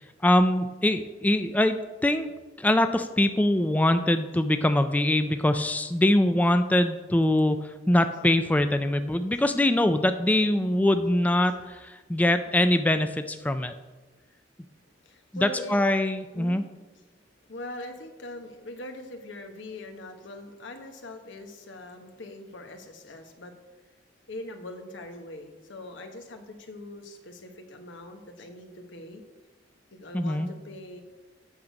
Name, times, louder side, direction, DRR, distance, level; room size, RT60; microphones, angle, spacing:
voice 1, 0.0-1.8 2.0-2.3 2.6-13.7 15.4-16.6 30.1-30.5, left 1 dB, 10° left, 9 dB, 0.3 m, -23 dB
voice 2, 15.0-15.8 16.3-16.6 16.9-17.0 17.5-23.5 24.3-29.2 29.9-31.0, left 2 dB, 85° left, 5 dB, 1.2 m, -42 dB
8.5 x 6.5 x 5.2 m, 1.2 s
head